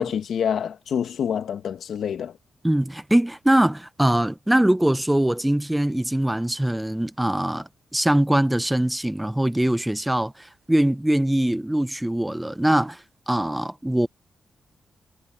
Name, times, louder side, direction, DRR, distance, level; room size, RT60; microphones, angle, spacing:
voice 1, 0.0-2.3, left 8 dB, 80° left, 2.0 m, -26 dB
voice 2, 2.6-14.1, right 1 dB, 10° right, 0.7 m, -22 dB
cardioid pair, 80°, 0 cm